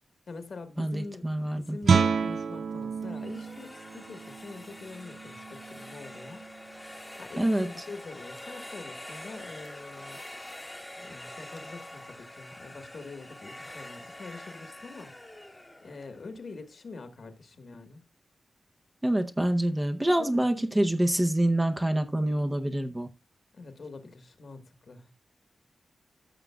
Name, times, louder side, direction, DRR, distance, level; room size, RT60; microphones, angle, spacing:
voice 1, 0.3-6.4 7.2-10.2 11.0-15.1 15.8-18.0 20.2-20.5 23.5-25.1, left 3 dB, 60° left, 1.4 m, -44 dB
voice 2, 0.8-1.8 7.4-7.7 19.0-23.1, right 1 dB, 15° right, 0.7 m, -26 dB
Guitar, 1.8-7.4, right 5 dB, 65° right, 0.3 m, -30 dB
sound 1, 3.0-16.9, left 1 dB, 10° left, 1.0 m, -45 dB
14.5 x 6.5 x 2.3 m
wide cardioid pair, 110°, 0 cm